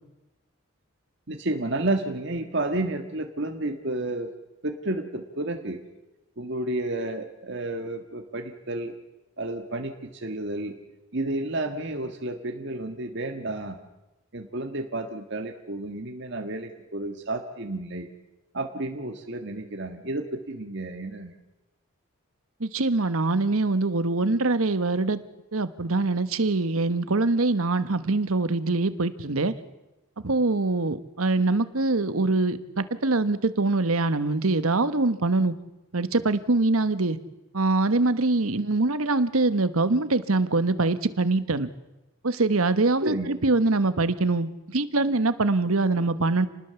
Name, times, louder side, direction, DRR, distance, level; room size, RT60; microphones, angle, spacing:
voice 1, 1.3-4.3 4.6-5.8 6.4-8.9 9.4-10.7 11.1-13.8 14.3-18.1 18.5-21.3 43.0-43.3, right 2 dB, 55° right, 4 dB, 1.7 m, -31 dB
voice 2, 22.6-25.2 25.5-29.5 30.2-35.6 35.9-37.2 37.5-41.7 42.2-46.5, right 3 dB, 85° right, 13 dB, 1.3 m, -24 dB
27.5 x 20.0 x 7.0 m, 1.0 s
head